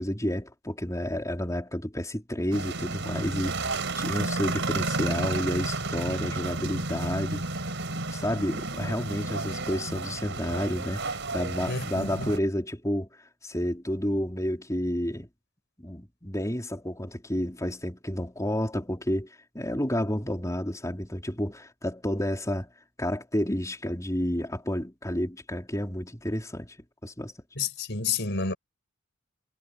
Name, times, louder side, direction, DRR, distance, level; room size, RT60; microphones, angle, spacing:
voice 1, 0.0-7.4 8.1-15.3 15.8-22.7 23.0-26.8 27.0-27.3, equal, 15° left, 4.3 m, -30 dB
sound 1, 2.5-12.4, right 3 dB, 60° right, 4.9 m, -32 dB
voice 2, 11.7-12.3 27.6-28.5, left 4 dB, 60° left, 6.0 m, -30 dB
head